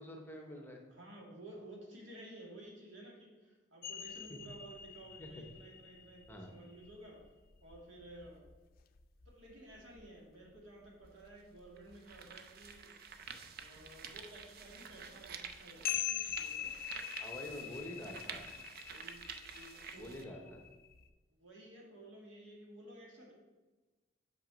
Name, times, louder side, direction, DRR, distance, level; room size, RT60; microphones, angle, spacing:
voice 1, 0.0-0.8 4.3-4.4 5.2-5.4 6.3-6.5 17.2-18.4 19.9-20.6, left 1 dB, 10° left, 2 dB, 0.9 m, -47 dB
voice 2, 0.9-7.2 7.6-8.5 9.3-13.1 13.6-16.8 17.2-17.9 18.9-20.5 21.4-23.3, right 1 dB, 75° right, -2 dB, 2.3 m, -54 dB
sound 1, 3.8-10.1 10.4-10.5 10.9-12.3 12.6-12.8 13.1-21.1, left 10 dB, 50° left, 0.4 m, -44 dB
sound 2, 11.0-11.1 11.8-20.2, right 6 dB, 50° right, 0.5 m, -49 dB
6.0 x 6.0 x 5.1 m, 1.2 s
head